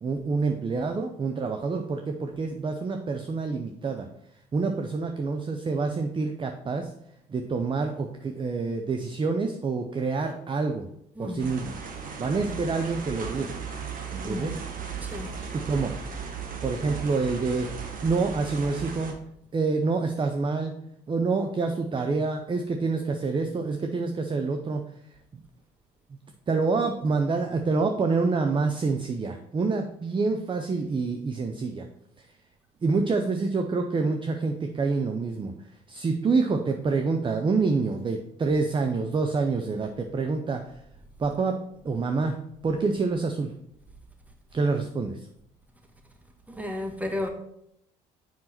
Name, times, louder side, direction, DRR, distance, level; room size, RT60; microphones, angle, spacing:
voice 1, 0.0-4.1 4.5-6.9 7.3-10.9 11.2-11.7 12.2-13.5 14.1-14.6 15.5-15.9 16.6-17.7 18.0-19.2 19.5-20.8 21.1-24.8 26.5-31.9 32.8-35.5 35.9-40.6 41.2-41.6 41.8-42.4 42.6-43.5 44.5-45.3, right 4 dB, 25° right, 5 dB, 0.7 m, -27 dB
sound 1, 11.4-19.1, right 6 dB, 40° right, 1.5 m, -36 dB
voice 2, 14.2-14.5 15.0-15.3 46.5-47.3, left 1 dB, 5° right, 3 dB, 1.5 m, -33 dB
7.6 x 5.5 x 4.3 m, 0.76 s
figure-of-eight pair, 55°, 21 cm